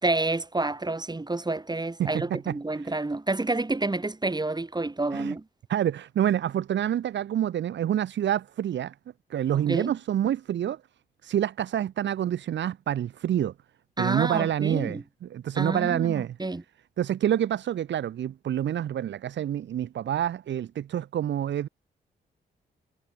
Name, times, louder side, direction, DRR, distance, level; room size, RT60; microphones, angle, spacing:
voice 1, 0.0-5.4 9.7-9.9 14.0-15.0 15.5-16.6, right 2 dB, 20° right, 5.9 m, -29 dB
voice 2, 2.0-2.5 2.8-2.9 5.1-5.3 5.7-8.9 9.3-10.8 11.2-13.5 14.0-16.4 17.0-21.7, right 10 dB, 80° right, 2.8 m, -27 dB
cardioid pair, 65°, 18 cm